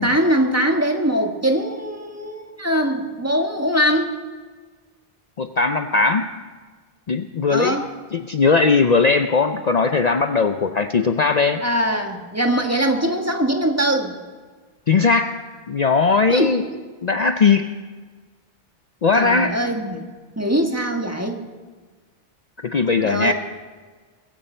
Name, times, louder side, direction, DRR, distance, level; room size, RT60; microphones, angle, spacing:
voice 1, 0.0-4.1 7.5-7.9 11.6-14.2 16.3-16.6 19.1-20.0 20.4-21.4 23.0-23.3, equal, 15° right, 3 dB, 1.5 m, -22 dB
voice 2, 5.4-6.3 7.1-7.8 8.1-11.6 14.9-15.3 15.7-16.6 17.0-17.7 19.0-19.5 22.6-23.3, left 4 dB, 45° left, 8 dB, 0.7 m, -18 dB
21.0 x 15.5 x 4.4 m, 1.4 s
omnidirectional pair, 1.0 m